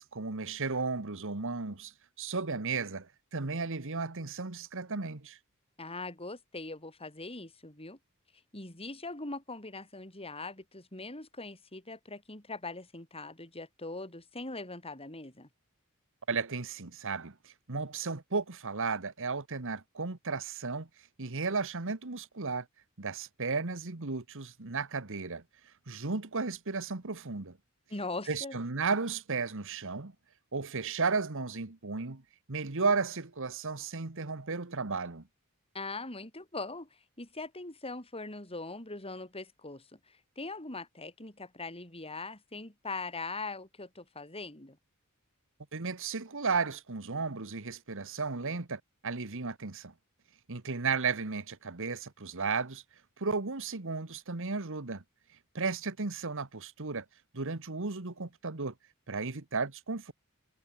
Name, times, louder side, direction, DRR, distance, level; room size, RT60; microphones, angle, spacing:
voice 1, 0.0-5.4 16.3-20.9 21.2-22.7 23.0-25.4 25.9-27.6 28.3-30.1 30.5-32.2 32.5-35.2 45.7-49.9 50.5-52.8 53.2-55.0 55.5-57.0 57.3-58.7 59.1-60.1, right 4 dB, 65° right, 1.6 m, -34 dB
voice 2, 5.8-8.0 8.5-15.5 27.9-28.6 35.7-44.8, left 3 dB, 25° left, 7.9 m, -41 dB
head